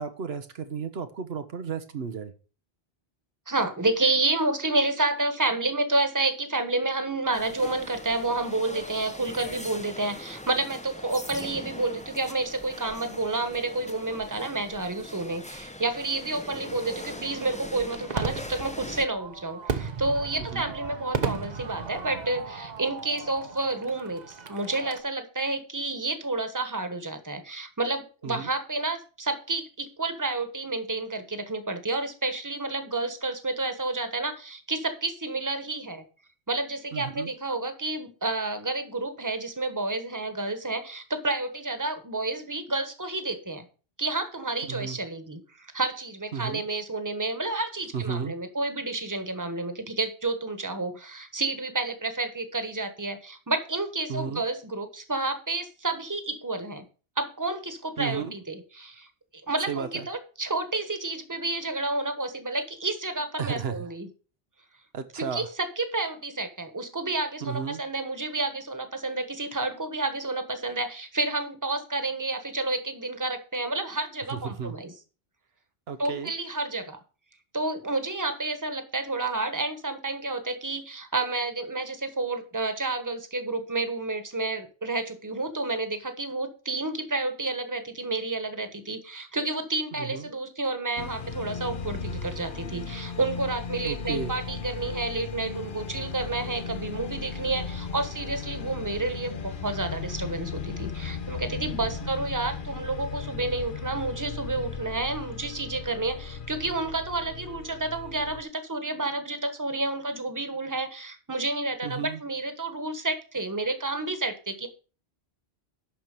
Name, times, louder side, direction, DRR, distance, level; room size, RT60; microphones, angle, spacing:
voice 1, 0.0-2.3 20.4-20.7 28.2-28.5 36.9-37.3 44.7-45.0 46.3-46.6 47.9-48.3 54.1-54.4 58.0-58.3 59.7-60.1 63.4-63.9 64.9-65.5 67.4-67.8 74.3-74.7 75.9-76.3 90.0-90.3 93.8-94.3 111.8-112.2, right 6 dB, 85° right, 9 dB, 1.2 m, -33 dB
voice 2, 3.5-36.0 36.5-43.7 44.0-56.8 57.2-59.1 59.3-64.1 65.3-74.9 76.0-77.0 77.5-114.7, right 2 dB, 20° right, 8 dB, 1.3 m, -30 dB
sound 1, 7.3-19.1, left 1 dB, 10° left, 0.6 m, -41 dB
Fireworks, 16.7-25.0, right 5 dB, 45° right, 1.0 m, -36 dB
sound 2, 91.0-108.4, left 5 dB, 55° left, 1.0 m, -36 dB
11.5 x 4.5 x 6.7 m, 0.36 s
omnidirectional pair, 1.0 m